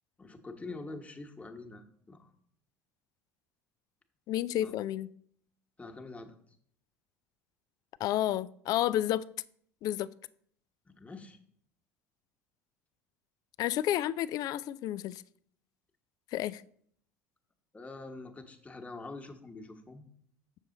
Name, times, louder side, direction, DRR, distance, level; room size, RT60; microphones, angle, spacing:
voice 1, 0.2-2.3 4.6-4.8 5.8-6.3 10.8-11.4 17.7-20.1, left 3 dB, 15° left, 1.2 m, -45 dB
voice 2, 4.3-5.1 8.0-9.2 9.8-10.1 13.6-15.2 16.3-16.6, left 13 dB, 50° left, 0.4 m, -30 dB
7.3 x 6.6 x 3.9 m
hypercardioid pair, 70°, 8 cm